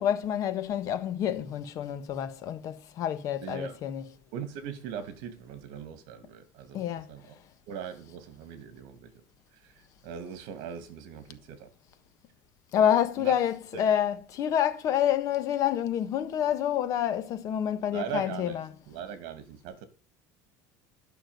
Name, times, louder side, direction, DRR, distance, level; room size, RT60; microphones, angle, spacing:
voice 1, 0.0-4.0 6.7-7.1 12.7-18.7, left 10 dB, 40° left, 1.4 m, -28 dB
voice 2, 3.4-3.8 4.3-7.2 7.7-9.1 10.0-11.7 13.2-13.3 13.7-13.8 17.9-18.6 18.9-19.9, right 8 dB, 65° right, 2.5 m, -40 dB
12.0 x 6.2 x 9.3 m
cardioid pair, 160°, 8 cm